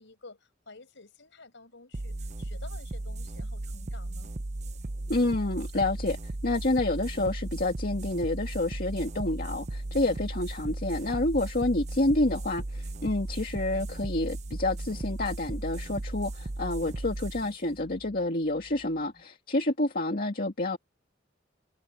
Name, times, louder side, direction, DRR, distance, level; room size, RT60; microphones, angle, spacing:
voice 1, 0.0-4.3, left 3 dB, 65° left, 6.3 m, -51 dB
sound 1, 1.9-19.0, right 2 dB, 35° right, 0.8 m, -36 dB
voice 2, 5.1-20.8, left 2 dB, 50° left, 2.0 m, -28 dB
head